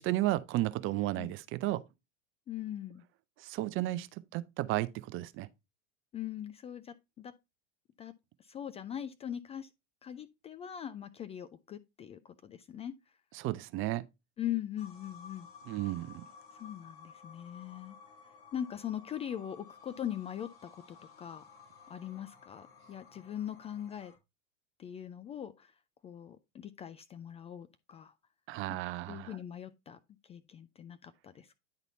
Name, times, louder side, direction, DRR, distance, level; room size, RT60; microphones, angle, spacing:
voice 1, 0.0-1.8 3.4-5.5 13.3-14.0 15.7-16.2 28.5-29.4, right 16 dB, 35° right, 0.6 m, -33 dB
voice 2, 2.5-3.0 6.1-7.3 8.0-8.1 8.4-9.7 10.0-12.9 14.4-15.5 16.5-18.0 18.5-21.5 21.9-24.1 24.8-25.7 26.0-28.1 29.1-31.6, left 10 dB, 20° left, 0.4 m, -41 dB
sound 1, 14.8-24.2, left 5 dB, 40° left, 2.6 m, -55 dB
9.6 x 4.0 x 4.0 m
hypercardioid pair, 90°, 36 cm